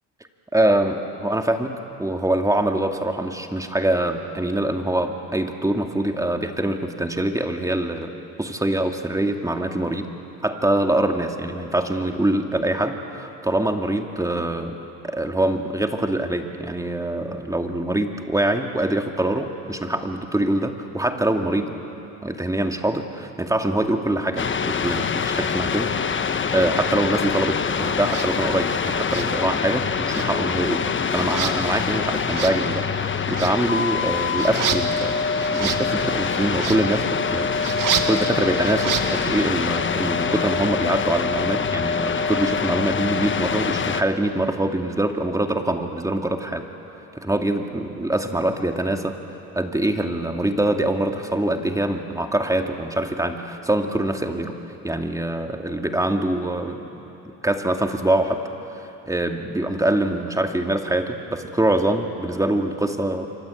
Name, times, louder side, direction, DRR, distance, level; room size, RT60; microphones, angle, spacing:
voice 1, 0.5-8.1 8.4-10.1 10.4-14.8 15.0-21.8 22.2-35.2 35.5-37.5 38.1-46.7 47.1-49.2 49.5-54.6 54.8-56.8 57.4-58.4 58.7-63.3, right 1 dB, 10° right, 4 dB, 2.4 m, -24 dB
sound 1, 24.4-44.0, left 6 dB, 30° left, 1.2 m, -25 dB
sound 2, 28.0-28.3 29.0-29.8 30.0-39.5, right 7 dB, 55° right, 2.2 m, -31 dB
28.0 x 24.5 x 8.5 m, 2.9 s
supercardioid pair, 90°, 38 cm